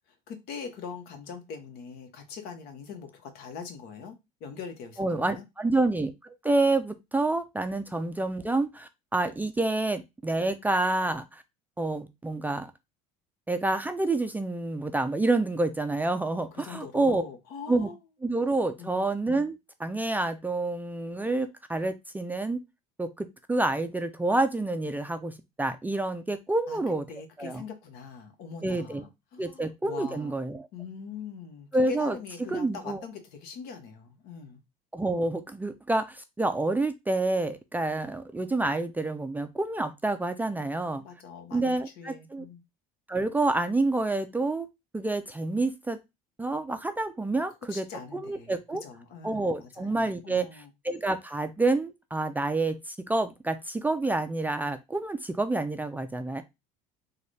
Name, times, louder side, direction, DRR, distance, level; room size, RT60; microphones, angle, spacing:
voice 1, 0.3-4.1 4.4-5.4 16.3-18.0 18.8-19.1 26.7-26.8 27.1-30.3 30.7-34.6 41.0-42.6 47.7-48.5 48.8-50.7, left 6 dB, 65° left, 1.1 m, -42 dB
voice 2, 5.0-11.4 11.8-12.7 13.5-17.2 17.7-17.9 18.2-22.6 23.0-27.0 27.4-27.6 28.6-29.0 29.4-30.7 31.7-32.2 32.5-33.0 34.9-41.0 41.5-42.4 43.1-44.7 44.9-46.0 46.4-47.9 48.1-48.8 49.2-56.4, right 2 dB, 10° right, 0.4 m, -28 dB
3.8 x 2.3 x 3.2 m
supercardioid pair, 105°, 17 cm